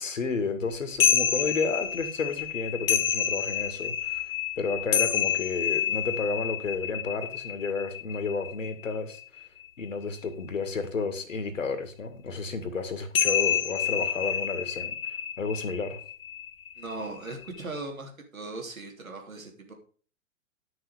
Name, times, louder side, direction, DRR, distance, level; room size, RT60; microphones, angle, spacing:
voice 1, 0.0-9.2 9.8-16.0, left 4 dB, 65° left, 10 dB, 2.1 m, -32 dB
sound 1, 1.0-9.6 13.2-17.8, left 9 dB, 45° left, 1.4 m, -29 dB
voice 2, 16.8-19.7, right 2 dB, 75° right, 3 dB, 3.2 m, -38 dB
10.5 x 6.7 x 5.1 m, 0.42 s
figure-of-eight pair, 120°, 41 cm